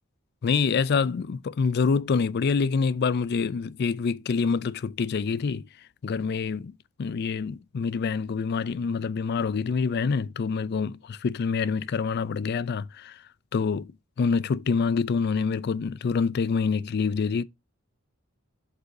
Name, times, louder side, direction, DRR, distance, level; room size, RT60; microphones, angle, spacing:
voice 1, 0.4-5.7 6.0-13.2 13.5-13.9 14.2-17.4, left 5 dB, 50° left, 0.4 m, -26 dB
7.8 x 5.4 x 2.6 m
head